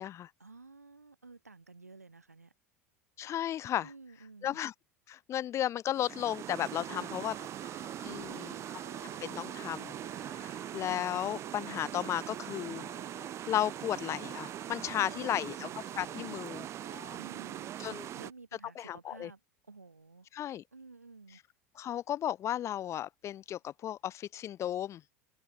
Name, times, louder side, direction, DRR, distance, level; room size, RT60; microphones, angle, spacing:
voice 1, 0.4-2.5 3.8-4.6 6.9-7.1 7.6-8.7 14.9-15.8 17.2-19.4 19.7-20.3 20.7-21.4, right 3 dB, 85° right, 1.7 m, -53 dB
voice 2, 3.2-3.9 4.4-4.7 5.1-7.3 8.0-8.5 9.2-12.9 13.5-15.7 16.0-16.7 17.8-18.1 18.8-19.3 20.3-20.6 21.7-25.0, left 11 dB, 35° left, 1.3 m, -34 dB
sound 1, 5.9-18.3, right 12 dB, 35° right, 0.7 m, -41 dB
sound 2, 6.9-17.2, left 33 dB, 55° left, 5.5 m, -56 dB
figure-of-eight pair, 75°, 8 cm